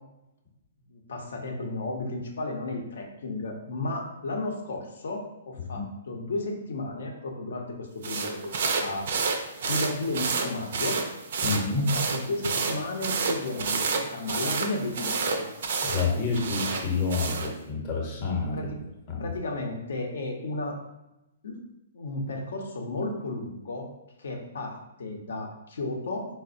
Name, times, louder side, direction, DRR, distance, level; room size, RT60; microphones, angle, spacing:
voice 1, 0.9-8.5 8.8-11.0 11.8-15.5 18.5-18.8 19.2-20.8 21.4-21.6 21.9-23.9 24.2-26.3, left 2 dB, 75° left, 2 dB, 0.6 m, -33 dB
sound 1, 8.0-17.5, right 4 dB, 65° right, 0.4 m, -30 dB
voice 2, 11.4-11.9 15.8-18.7 19.1-19.3, left 4 dB, 35° left, -1 dB, 0.7 m, -28 dB
4.0 x 2.1 x 2.5 m, 0.93 s
hypercardioid pair, 145°, 0 cm